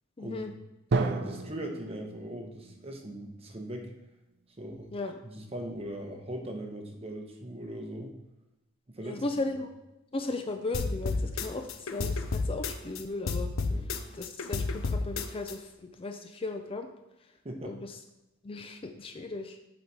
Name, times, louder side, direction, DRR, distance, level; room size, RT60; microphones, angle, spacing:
voice 1, 0.2-0.5 4.9-5.2 9.0-9.7 10.1-13.5 14.1-16.9 17.6-18.0 18.4-19.6, left 2 dB, 25° left, 6 dB, 0.4 m, -36 dB
voice 2, 0.9-3.9 4.6-4.9 5.2-8.1 8.9-9.2 13.7-13.8 17.4-17.8, right 1 dB, 30° right, 3 dB, 1.0 m, -39 dB
Drum, 0.9-4.6, right 3 dB, 55° right, 0.5 m, -34 dB
sound 1, 10.7-13.0 13.3-15.5, left 3 dB, 75° left, 0.6 m, -31 dB
7.7 x 4.1 x 4.7 m, 0.96 s
head